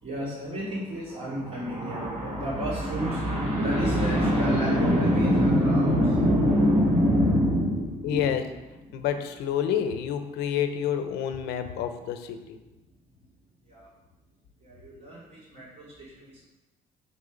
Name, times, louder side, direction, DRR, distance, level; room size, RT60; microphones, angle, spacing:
voice 1, 0.0-8.3 8.8-9.0 13.7-13.9 14.6-16.5, equal, 40° right, -10 dB, 3.1 m, -25 dB
voice 2, 8.0-8.4 8.9-12.6, left 9 dB, 85° left, 8 dB, 0.9 m, -28 dB
7.0 x 6.7 x 5.1 m, 1.1 s
cardioid pair, 110°, 17 cm